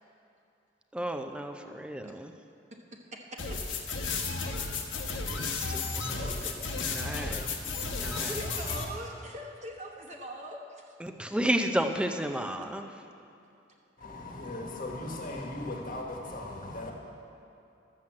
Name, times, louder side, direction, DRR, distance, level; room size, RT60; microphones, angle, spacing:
voice 1, 0.9-2.3 5.2-8.4 11.0-13.0, right 1 dB, 5° right, 6 dB, 0.6 m, -33 dB
voice 2, 2.7-3.6 5.4-6.8 8.1-10.9, equal, 40° right, 0 dB, 1.1 m, -43 dB
sound 1, 3.4-8.8, left 4 dB, 85° left, 1.3 m, -33 dB
voice 3, 14.0-16.9, left 2 dB, 45° left, 0 dB, 1.4 m, -38 dB
12.5 x 7.5 x 7.5 m, 2.6 s
head